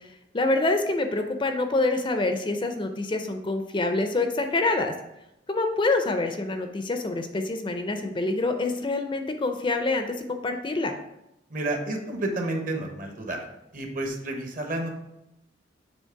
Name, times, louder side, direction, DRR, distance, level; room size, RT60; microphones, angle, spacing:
voice 1, 0.3-4.9 5.5-10.9, left 2 dB, 25° left, 6 dB, 0.4 m, -26 dB
voice 2, 11.5-13.5 13.7-14.9, right 2 dB, 45° right, 3 dB, 1.0 m, -30 dB
7.2 x 3.1 x 4.6 m, 0.87 s
head